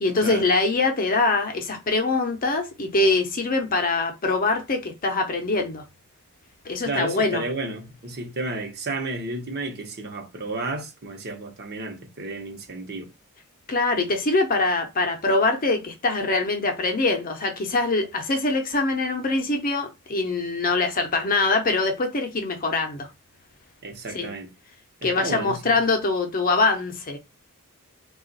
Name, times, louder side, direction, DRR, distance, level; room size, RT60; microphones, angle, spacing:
voice 1, 0.0-5.8 6.6-7.4 13.7-23.1 24.1-24.3 25.0-27.2, left 3 dB, 40° left, 0.7 m, -23 dB
voice 2, 6.8-13.1 23.8-24.5 25.0-25.8, right 2 dB, 45° right, 0.9 m, -32 dB
3.7 x 2.4 x 3.9 m
head